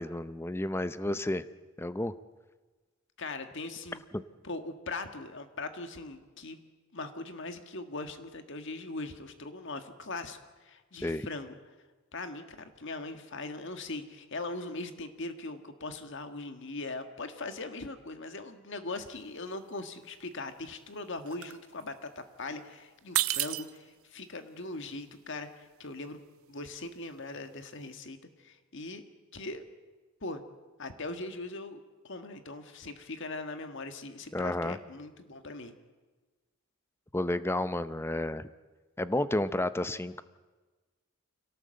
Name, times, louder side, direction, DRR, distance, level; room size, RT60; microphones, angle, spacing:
voice 1, 0.0-1.4 1.8-2.1 4.1-4.2 11.0-11.3 34.3-34.8 37.1-38.4 39.0-40.2, left 1 dB, 10° left, 13 dB, 0.6 m, -31 dB
voice 2, 3.2-4.0 4.4-6.6 6.9-11.5 12.1-26.2 26.5-29.0 29.3-29.6 30.2-30.4 30.8-35.7, left 2 dB, 55° left, 8 dB, 1.7 m, -40 dB
sound 1, 19.0-19.2 19.5-20.1 20.4-22.6 23.0-28.0, right 15 dB, 75° right, 0.7 m, -35 dB
25.5 x 17.5 x 7.8 m, 1.3 s
head